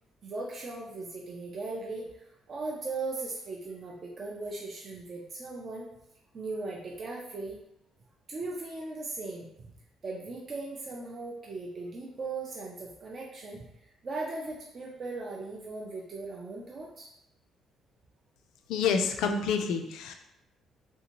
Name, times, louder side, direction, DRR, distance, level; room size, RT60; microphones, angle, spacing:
voice 1, 0.2-5.9 6.3-7.6 8.3-9.7 10.0-17.1, right 3 dB, 30° right, -2 dB, 0.4 m, -38 dB
voice 2, 18.7-20.1, left 6 dB, 85° left, 6 dB, 0.3 m, -28 dB
3.3 x 2.7 x 2.8 m, 0.82 s
cardioid pair, 175°, 0 cm